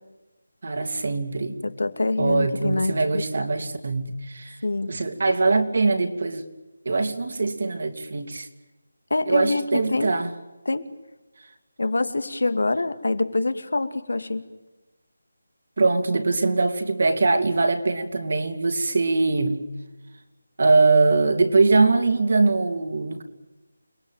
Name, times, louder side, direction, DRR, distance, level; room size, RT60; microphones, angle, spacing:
voice 1, 0.6-1.6 2.2-4.6 4.9-6.4 6.8-8.5 9.3-10.3 15.8-19.6 20.6-23.2, right 3 dB, 45° right, 7 dB, 2.7 m, -22 dB
voice 2, 1.6-3.2 4.6-5.0 9.1-9.6 9.9-10.1 10.6-10.8 11.8-14.4, left 2 dB, 85° left, 9 dB, 2.7 m, -25 dB
29.0 x 20.5 x 9.2 m, 1.1 s
figure-of-eight pair, 180°, 0 cm